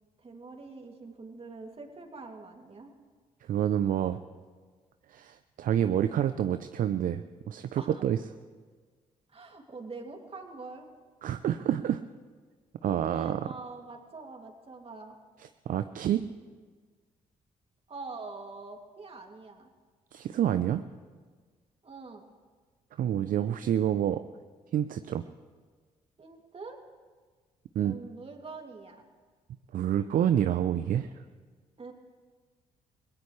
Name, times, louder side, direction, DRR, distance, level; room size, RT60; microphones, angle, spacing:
voice 1, 0.2-2.9 4.1-4.2 7.7-8.0 9.3-10.9 13.1-15.2 17.9-19.7 21.8-22.2 26.2-26.8 27.8-29.1 31.8-31.9, right 3 dB, 40° right, 2 dB, 2.6 m, -44 dB
voice 2, 3.5-4.2 5.1-8.2 11.2-12.0 12.8-13.5 15.7-16.2 20.1-20.8 23.0-24.2 24.7-25.2 27.8-28.0 29.7-31.1, right 10 dB, 60° right, 10 dB, 0.6 m, -28 dB
21.5 x 18.5 x 3.3 m, 1.5 s
hypercardioid pair, 50°, 16 cm